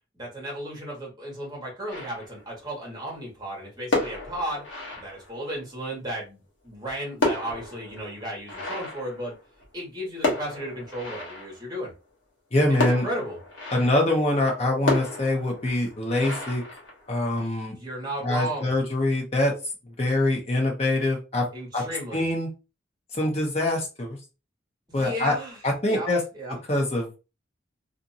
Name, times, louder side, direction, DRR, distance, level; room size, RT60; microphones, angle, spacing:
voice 1, 0.2-4.6 5.0-9.3 9.7-11.9 12.7-13.4 17.7-18.7 21.5-22.2 24.9-25.6 25.9-26.6, right 1 dB, 20° right, -3 dB, 1.2 m, -34 dB
sound 1, 1.9-2.6 3.8-5.6 6.7-9.8 10.2-11.8 12.8-14.2 14.9-17.4, left 2 dB, 70° left, 1.2 m, -31 dB
voice 2, 12.5-13.1 13.7-16.6 17.1-17.7 18.2-19.5 19.9-21.5 21.7-21.8 22.1-22.5 23.1-24.2 24.9-25.3 25.6-26.2 26.7-27.2, left 1 dB, 30° left, 1 dB, 0.8 m, -24 dB
2.6 x 2.5 x 2.6 m, 0.30 s
head